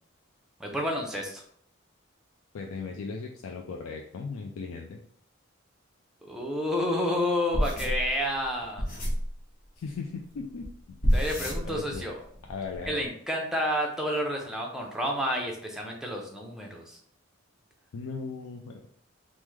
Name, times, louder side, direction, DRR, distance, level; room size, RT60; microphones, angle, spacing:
voice 1, 0.6-1.4 6.2-8.8 11.1-12.2 12.9-17.0, equal, 5° right, 0 dB, 0.5 m, -30 dB
voice 2, 2.5-5.0 9.8-11.0 11.6-12.1 12.4-13.1 17.9-18.9, left 4 dB, 80° left, 2 dB, 0.3 m, -37 dB
sound 1, 7.5-9.3 10.6-10.7 11.0-12.1 12.3-12.9, equal, 45° left, 0.8 m, -28 dB
3.4 x 2.0 x 3.1 m, 0.63 s
head